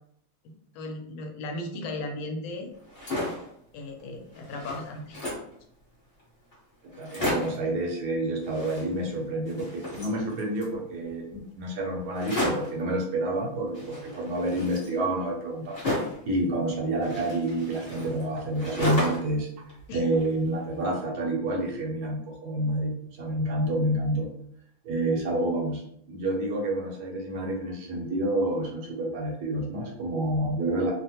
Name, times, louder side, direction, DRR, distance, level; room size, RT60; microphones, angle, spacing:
voice 1, 0.7-2.7 3.7-5.3 19.9-20.0, left 2 dB, 80° left, 3 dB, 1.3 m, -36 dB
sound 1, 2.8-3.5 4.0-4.1 4.3-5.5 6.2-6.3 6.5-6.6 6.9-7.7 8.4-9.2 9.4-10.8 12.1-12.8 13.7-16.3 17.0-19.4 19.7-20.6, left 1 dB, 35° left, 0.8 m, -33 dB
voice 2, 7.0-19.5 19.9-24.3 24.8-30.9, right 1 dB, 65° right, -1 dB, 1.0 m, -29 dB
3.3 x 2.1 x 2.8 m, 0.72 s
omnidirectional pair, 2.2 m